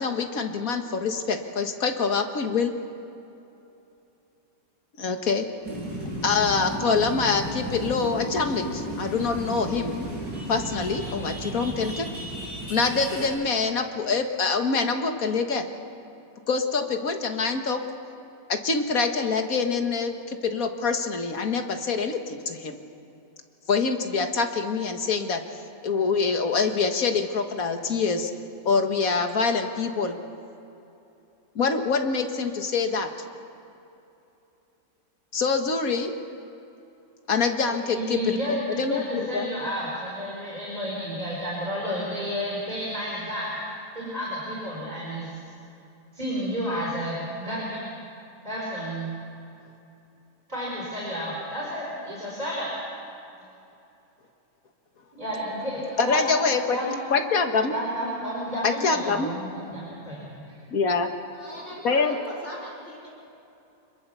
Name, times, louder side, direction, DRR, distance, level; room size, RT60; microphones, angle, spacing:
voice 1, 0.0-2.7 5.0-5.5 6.2-10.1 10.5-12.1 12.7-15.6 16.5-17.8 18.5-22.8 23.7-25.4 25.8-28.3 28.7-30.2 31.6-33.1 35.3-36.1 37.3-39.5 46.7-46.9 56.0-56.8 57.1-57.7 58.6-59.3 60.7-61.1 61.8-62.2, left 4 dB, 60° left, 5 dB, 2.0 m, -25 dB
sound 1, 5.6-13.3, right 1 dB, 85° right, 7.3 m, -34 dB
voice 2, 37.7-43.6 43.9-45.3 46.1-47.8 48.4-49.1 50.5-52.7 55.1-56.2 56.7-57.0 57.7-60.2 60.4-60.6, equal, 25° right, -6 dB, 4.9 m, -31 dB
voice 3, 61.3-63.1, equal, 45° left, -4 dB, 5.0 m, -39 dB
26.0 x 22.0 x 6.9 m, 2.8 s
omnidirectional pair, 1.7 m